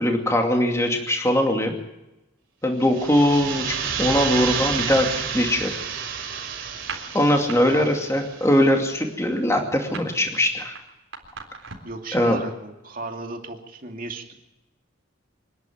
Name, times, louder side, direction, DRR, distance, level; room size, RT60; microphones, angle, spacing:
voice 1, 0.0-1.7 2.6-5.7 7.1-10.7 12.1-12.4, left 1 dB, 15° left, 2 dB, 2.5 m, -21 dB
sound 1, 2.8-8.5, right 6 dB, 60° right, 3.7 m, -30 dB
sound 2, 6.7-7.6 7.9-8.2 8.5-12.0, right 5 dB, 80° right, 4.0 m, -38 dB
voice 2, 11.8-14.3, right 2 dB, 45° right, 3 dB, 2.6 m, -34 dB
26.0 x 11.0 x 9.4 m, 0.95 s
head